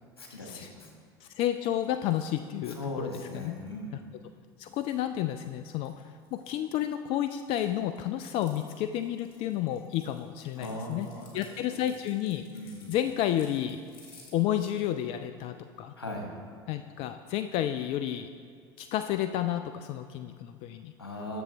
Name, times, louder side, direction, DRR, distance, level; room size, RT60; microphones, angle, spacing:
voice 1, 0.2-0.9 2.7-3.9 10.6-11.8 12.5-12.9 16.0-16.3 21.0-21.4, left 1 dB, 90° left, 0 dB, 1.4 m, -39 dB
voice 2, 1.2-3.1 3.3-3.5 4.6-6.0 6.3-11.1 11.3-12.4 12.9-13.8 14.3-15.9 16.7-18.3 18.8-20.9, left 11 dB, 50° left, 9 dB, 0.4 m, -31 dB
sound 1, 1.5-3.7 4.5-6.9 7.2-14.3, left 3 dB, 70° left, 2.0 m, -58 dB
10.0 x 7.1 x 3.4 m, 2.2 s
hypercardioid pair, 70°, 12 cm